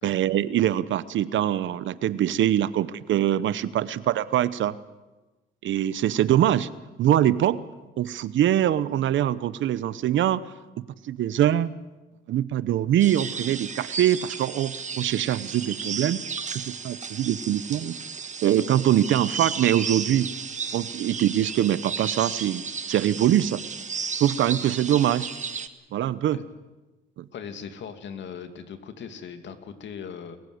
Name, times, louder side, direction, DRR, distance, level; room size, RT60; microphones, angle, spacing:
voice 1, 0.0-4.7 5.6-6.7 7.0-7.6 8.0-10.4 11.0-11.7 12.3-16.2 16.5-18.0 18.4-20.3 20.7-23.6 24.2-25.3 25.9-26.4 27.2-27.3, right 11 dB, 75° right, 17 dB, 0.9 m, -23 dB
sound 1, 13.0-25.7, right 6 dB, 35° right, 1.4 m, -34 dB
voice 2, 27.3-30.4, left 7 dB, 65° left, 8 dB, 2.4 m, -39 dB
28.0 x 15.5 x 8.0 m, 1.2 s
cardioid pair, 90°, 20 cm